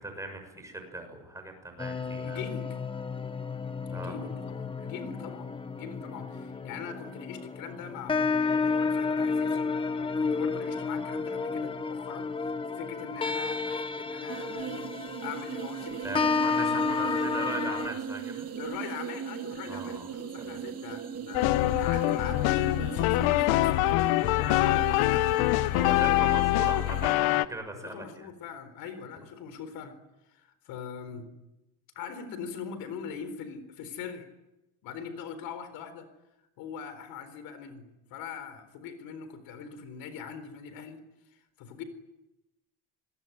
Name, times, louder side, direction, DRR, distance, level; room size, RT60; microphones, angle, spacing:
voice 1, 0.0-2.4 3.9-4.1 16.0-18.5 19.7-20.1 20.4-20.6 24.4-24.8 25.7-28.3, right 2 dB, 10° right, 5 dB, 6.7 m, -39 dB
sound 1, 1.8-17.9, left 4 dB, 15° left, 1.2 m, -31 dB
voice 2, 2.2-2.8 3.9-5.5 5.7-12.3 12.8-16.4 18.6-25.3 25.6-26.2 27.7-30.0 30.3-31.3 31.9-34.3 34.8-36.1 36.4-41.0 41.3-41.8, left 6 dB, 70° left, 11 dB, 4.2 m, -42 dB
sound 2, 14.3-27.1, right 7 dB, 40° right, 2.3 m, -39 dB
sound 3, 21.3-27.5, left 18 dB, 85° left, 1.1 m, -24 dB
27.0 x 21.5 x 9.5 m, 0.95 s
cardioid pair, 150°, 37 cm